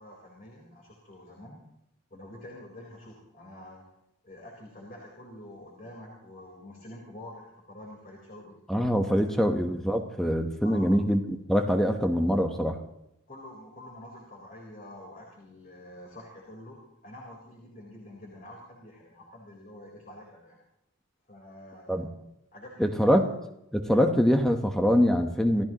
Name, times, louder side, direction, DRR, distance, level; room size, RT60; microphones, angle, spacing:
voice 1, 0.0-1.6 2.1-3.8 4.2-8.6 9.2-9.6 10.6-10.9 13.3-20.6 21.3-22.0 22.5-23.3, left 1 dB, 40° left, -2 dB, 4.1 m, -47 dB
voice 2, 8.7-12.8 21.9-22.1 22.8-23.3 23.7-25.6, equal, ahead, 4 dB, 1.1 m, -24 dB
28.0 x 15.0 x 3.0 m, 0.82 s
head